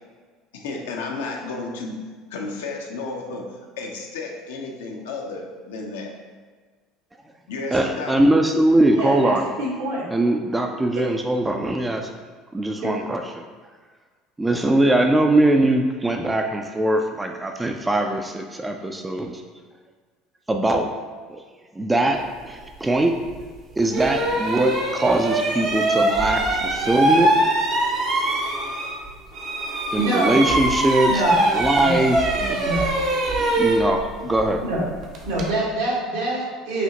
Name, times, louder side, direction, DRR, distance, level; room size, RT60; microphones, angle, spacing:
voice 1, 0.5-2.0 2.3-3.5 3.8-6.1 7.5-8.2, left 3 dB, 70° left, 1 dB, 0.6 m, -32 dB
voice 2, 7.7-9.4 10.1-12.1 12.5-13.4 14.4-19.4 20.5-20.9 21.3-21.4 21.7-23.2 23.8-27.3 29.9-32.7 33.6-34.6, right 1 dB, 15° right, 3 dB, 0.3 m, -21 dB
voice 3, 8.9-10.0 10.9-11.0 12.8-12.9 29.9-30.4 31.0-31.4 31.8-32.0 32.6-32.8 34.6-34.8 35.2-36.8, right 1 dB, 75° right, -6 dB, 1.3 m, -25 dB
sound 1, 23.3-23.4 23.9-29.1 29.3-35.5, right 1 dB, 50° right, 0.7 m, -23 dB
5.0 x 2.7 x 2.9 m, 1.5 s
figure-of-eight pair, 65°, 0 cm